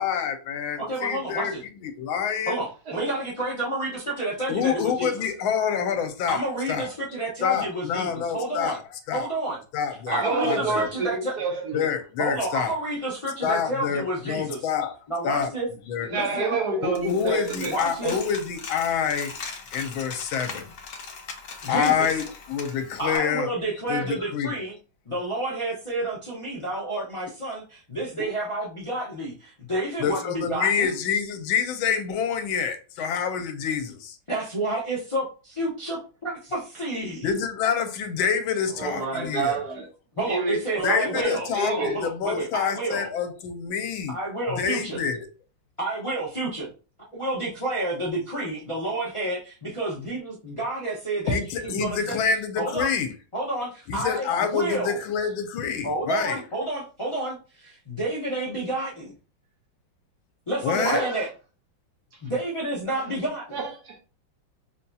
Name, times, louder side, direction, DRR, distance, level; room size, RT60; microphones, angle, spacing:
voice 1, 0.0-1.5 1.8-2.6 4.5-6.4 6.7-6.9 7.4-8.8 9.1-9.3 9.7-10.9 11.7-12.7 13.4-14.9 15.2-15.5 15.9-16.1 16.8-19.3 19.7-20.7 21.7-23.5 23.9-24.5 30.0-34.2 37.2-39.6 40.8-44.2 44.6-45.3 51.3-53.1 53.9-56.4 60.6-61.0, left 7 dB, 80° left, 1.4 m, -27 dB
voice 2, 0.8-1.6 2.5-5.1 6.3-8.8 9.1-9.6 10.1-11.3 12.2-14.7 15.1-15.7 16.1-16.6 17.7-18.2 21.6-22.1 23.0-24.8 25.1-31.0 34.3-37.3 40.2-43.1 44.1-45.0 45.8-46.7 47.1-51.4 51.6-52.2 52.6-52.9 53.3-55.0 55.8-59.1 60.5-61.3 62.2-63.5, right 2 dB, 45° left, 0.4 m, -30 dB
voice 3, 10.1-11.9 16.0-17.7 38.7-39.9 40.2-42.0 60.8-61.3 63.5-64.0, right 3 dB, 60° right, 1.3 m, -28 dB
Coin (dropping), 17.0-23.2, left 4 dB, 65° left, 0.9 m, -39 dB
5.3 x 2.7 x 2.3 m
omnidirectional pair, 2.2 m